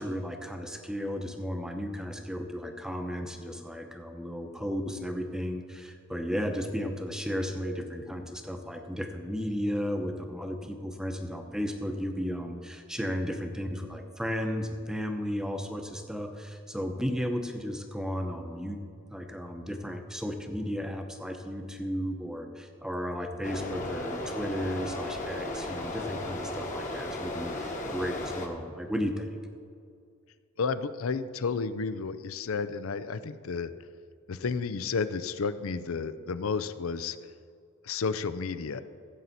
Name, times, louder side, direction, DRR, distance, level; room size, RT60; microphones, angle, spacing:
voice 1, 0.0-18.8 19.1-29.3, equal, 5° right, 4 dB, 0.8 m, -34 dB
sound 1, 23.4-28.5, left 1 dB, 35° left, 1.3 m, -35 dB
voice 2, 30.6-33.7 34.3-37.2 37.8-38.8, left 5 dB, 75° left, 13 dB, 0.5 m, -31 dB
15.0 x 8.0 x 4.2 m, 2.3 s
head